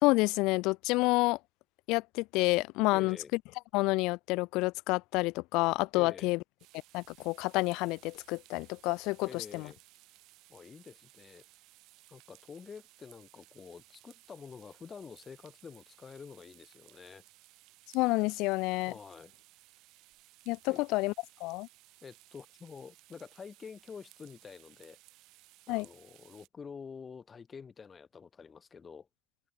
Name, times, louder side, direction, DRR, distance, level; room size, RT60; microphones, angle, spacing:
voice 1, 0.0-1.4 1.9-3.2 3.7-6.4 6.9-9.7 17.9-18.9 20.5-21.1 21.4-21.7 25.7-25.9, left 23 dB, 60° left, 0.9 m, -29 dB
voice 2, 2.9-3.3 5.9-6.3 9.3-9.8 10.5-11.5 12.1-17.2 18.8-19.3 20.7-20.8 22.0-25.0 25.7-29.1, left 6 dB, 25° left, 7.9 m, -48 dB
sound 1, 6.6-26.5, right 19 dB, 60° right, 7.6 m, -60 dB
open air
supercardioid pair, 110°, 0 cm